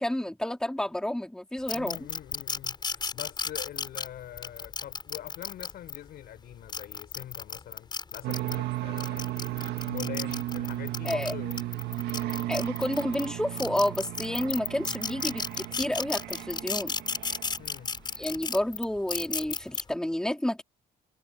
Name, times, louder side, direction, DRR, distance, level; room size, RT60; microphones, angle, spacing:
voice 1, 0.0-2.0 11.0-11.3 12.5-16.9 18.2-20.6, left 1 dB, 5° left, 3.0 m, -30 dB
voice 2, 1.7-9.3 9.9-11.6 17.6-17.9, left 12 dB, 65° left, 6.7 m, -43 dB
sound 1, 1.7-6.0 6.5-8.6 9.0-13.3 13.6-19.8, left 4 dB, 25° left, 4.8 m, -33 dB
sound 2, 8.2-17.8, right 15 dB, 75° right, 1.9 m, -35 dB
cardioid pair, 110°, 17 cm